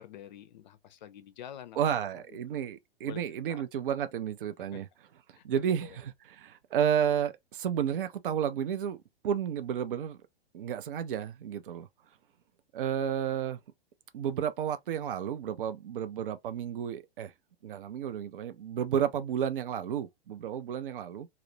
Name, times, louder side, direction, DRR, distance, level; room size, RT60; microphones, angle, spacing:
voice 1, 0.0-1.8 2.1-2.6 3.1-3.2 3.5-3.6 4.7-4.8 5.3-6.0, left 10 dB, 45° left, 0.5 m, -47 dB
voice 2, 1.8-4.9 5.4-9.0 9.2-10.2 10.5-11.9 12.7-13.6 14.1-17.3 17.6-21.3, right 9 dB, 60° right, 0.5 m, -32 dB
2.4 x 2.0 x 2.7 m
figure-of-eight pair, 110°, 31 cm